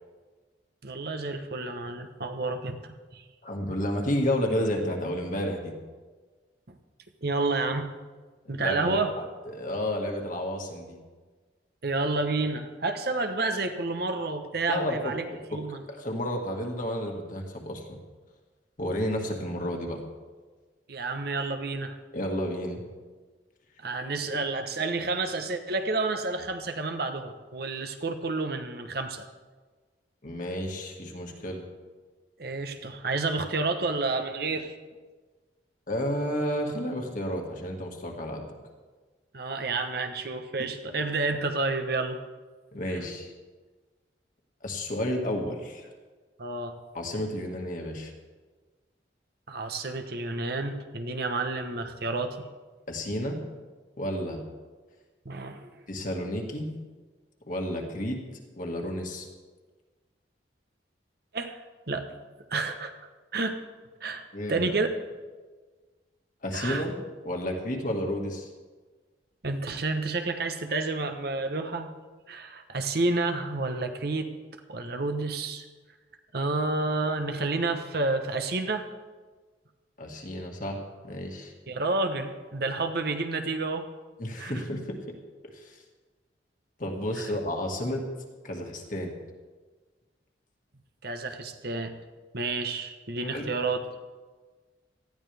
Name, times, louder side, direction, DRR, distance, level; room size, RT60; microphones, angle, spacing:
voice 1, 0.8-3.2 6.7-6.8 7.2-7.9 8.5-9.1 11.8-15.2 15.5-15.8 20.9-22.0 23.8-29.3 32.4-34.7 39.3-42.2 42.9-43.0 46.4-46.8 49.5-52.5 55.2-55.7 61.3-61.6 61.9-62.1 62.5-62.9 63.3-63.6 64.0-64.2 64.5-64.9 66.5-66.8 69.4-71.9 72.3-74.3 74.7-75.7 76.3-78.9 81.7-83.9 84.4-84.6 87.2-87.3 91.0-91.9 92.3-93.9, right 3 dB, 55° right, 6 dB, 1.1 m, -30 dB
voice 2, 3.4-5.7 8.5-11.0 14.7-15.6 15.9-18.0 18.8-20.0 22.1-22.8 24.3-24.4 30.2-31.6 35.9-38.5 42.7-43.3 44.6-45.9 46.9-48.1 52.9-53.4 54.0-54.4 55.9-56.7 57.5-58.2 58.6-59.3 64.3-64.7 66.4-67.0 67.2-68.5 80.0-81.5 84.2-85.0 85.5-85.8 86.8-88.0 88.4-89.1 93.3-93.5, equal, 45° left, 1 dB, 1.9 m, -31 dB
18.5 x 13.0 x 3.5 m, 1.4 s
head